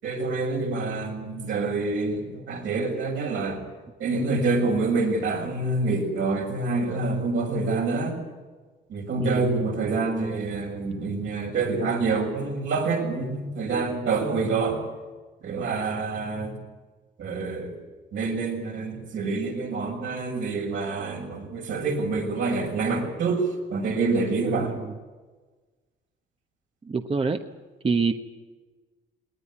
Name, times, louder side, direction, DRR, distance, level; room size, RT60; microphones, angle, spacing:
voice 1, 0.0-3.6 4.0-8.2 8.9-14.8 15.4-16.5 17.2-17.8 18.1-24.7, right 3 dB, 75° right, 0 dB, 6.8 m, -27 dB
voice 2, 26.9-27.4 27.8-28.2, right 4 dB, 30° right, 6 dB, 1.1 m, -25 dB
20.0 x 19.0 x 9.8 m, 1.3 s
cardioid pair, 90°, 20 cm